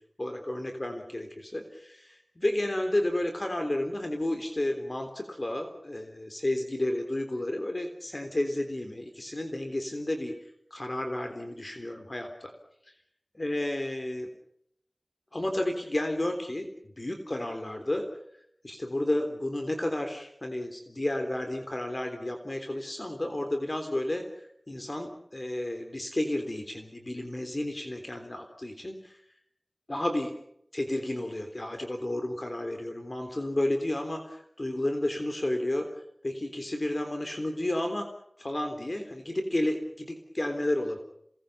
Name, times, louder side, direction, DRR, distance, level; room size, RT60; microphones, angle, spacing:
voice 1, 0.2-10.3 10.7-12.5 13.4-14.3 15.3-16.7 17.0-18.1 18.6-29.2 29.9-30.3 30.7-35.9 36.2-38.1 38.4-41.0, left 1 dB, 40° left, 5 dB, 3.5 m, -32 dB
27.5 x 20.0 x 7.1 m, 0.74 s
wide cardioid pair, 50°, 0 cm